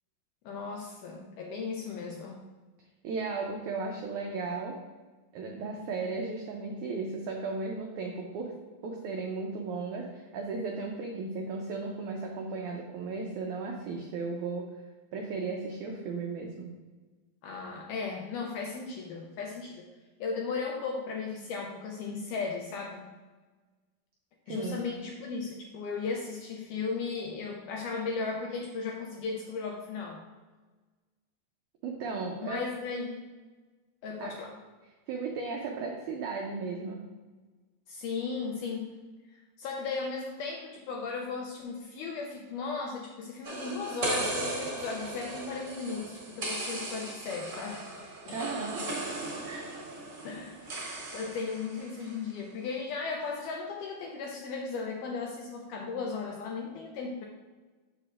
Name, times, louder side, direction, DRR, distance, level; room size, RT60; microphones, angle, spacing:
voice 1, 0.4-2.4 17.4-19.9 20.2-23.1 24.5-30.2 32.4-33.2 34.0-34.5 37.9-39.0 39.3-47.8 48.3-48.4 50.2-50.7 51.1-57.3, left 4 dB, 85° left, 0 dB, 1.8 m, -36 dB
voice 2, 3.0-4.7 5.3-8.5 8.8-14.7 15.1-16.7 24.5-24.8 31.8-32.7 34.2-34.3 35.1-37.0 48.3-49.1 49.4-49.7, right 4 dB, 85° right, 0 dB, 1.7 m, -35 dB
sound 1, 43.4-52.2, right 2 dB, 35° right, 1.6 m, -37 dB
6.8 x 6.7 x 2.4 m, 1.3 s
omnidirectional pair, 4.1 m